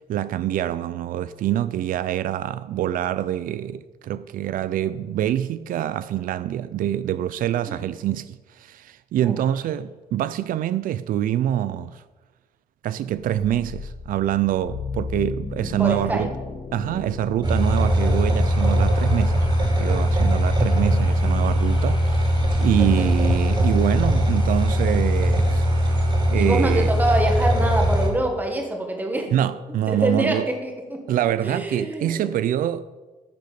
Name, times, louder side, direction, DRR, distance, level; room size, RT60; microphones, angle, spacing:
voice 1, 0.1-12.0 12.8-16.3 16.7-19.5 19.8-26.0 26.3-26.9 29.3-30.5 31.1-32.8, right 11 dB, 85° right, 0.5 m, -25 dB
sound 1, 13.2-26.4, left 5 dB, 35° left, 0.7 m, -36 dB
voice 2, 15.8-16.3 22.7-23.2 26.3-29.3 29.9-31.0 31.4-32.3, right 1 dB, 10° right, 1.7 m, -25 dB
sound 2, 17.4-28.1, equal, 35° right, 3.0 m, -20 dB
11.5 x 6.7 x 8.4 m
wide cardioid pair, 175°, 14 cm